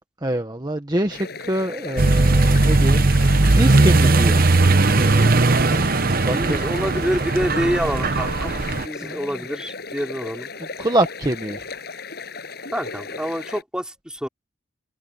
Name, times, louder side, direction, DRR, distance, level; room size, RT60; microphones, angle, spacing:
voice 1, 0.2-3.1 3.5-4.5 5.0-5.3 6.2-6.7 9.0-9.3 10.8-11.6, right 1 dB, 20° right, 1.4 m, -25 dB
sound 1, 1.1-13.6, left 4 dB, 60° left, 6.7 m, -36 dB
Accelerating revving vroom, 2.0-8.9, right 2 dB, 50° right, 1.0 m, -18 dB
voice 2, 6.3-10.5 12.7-14.3, equal, 5° right, 3.4 m, -27 dB
head